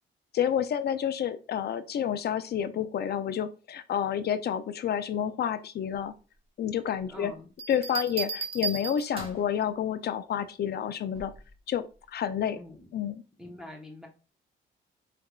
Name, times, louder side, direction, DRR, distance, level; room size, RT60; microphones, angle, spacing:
voice 1, 0.3-6.1 6.6-7.3 7.7-11.3 11.7-11.9 12.1-12.6 12.9-13.2, left 9 dB, 55° left, 11 dB, 0.5 m, -29 dB
voice 2, 7.1-7.5 12.5-12.9 13.4-14.1, left 1 dB, 5° right, -1 dB, 1.0 m, -44 dB
Bell, 7.6-9.5 11.2-11.5, right 5 dB, 30° right, 1.2 m, -35 dB
4.7 x 3.4 x 2.4 m, 0.33 s
cardioid pair, 90°, 20 cm